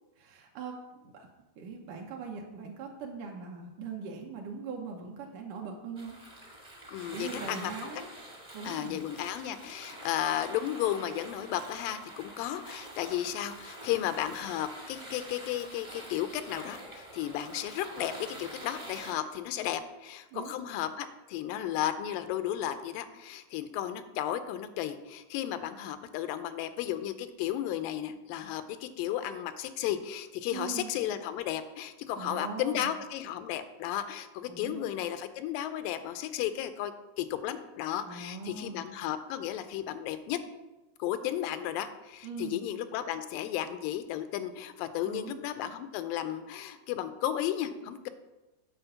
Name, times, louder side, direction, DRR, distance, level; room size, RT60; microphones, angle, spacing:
voice 1, 0.2-1.3 1.6-6.2 7.1-8.1 8.5-9.0 20.3-20.5 30.5-30.9 32.1-32.9 34.5-35.0 38.1-38.8 42.2-42.7 45.1-45.4, right 5 dB, 75° right, 0 dB, 2.4 m, -41 dB
sound 1, 6.0-19.1, right 1 dB, 25° right, 0.6 m, -46 dB
voice 2, 6.9-7.9 8.6-40.4 41.0-48.1, left 11 dB, 90° left, 11 dB, 2.3 m, -34 dB
9.2 x 4.4 x 7.0 m, 1.1 s
omnidirectional pair, 3.9 m